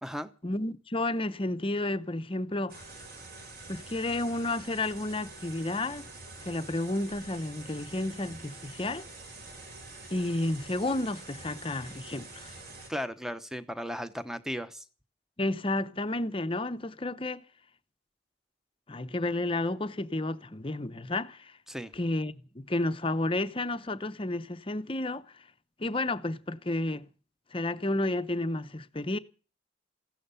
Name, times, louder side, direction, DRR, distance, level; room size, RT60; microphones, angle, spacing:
voice 1, 0.4-2.9 3.7-6.0 6.4-9.0 10.1-12.5 15.4-17.4 18.9-21.5 21.9-25.4 25.8-27.1 27.5-29.2, left 2 dB, 25° left, 0.8 m, -31 dB
sound 1, 2.7-12.9, right 2 dB, 50° right, 4.3 m, -46 dB
voice 2, 12.9-14.8 21.7-21.9, equal, ahead, 0.9 m, -36 dB
15.5 x 12.5 x 7.0 m
head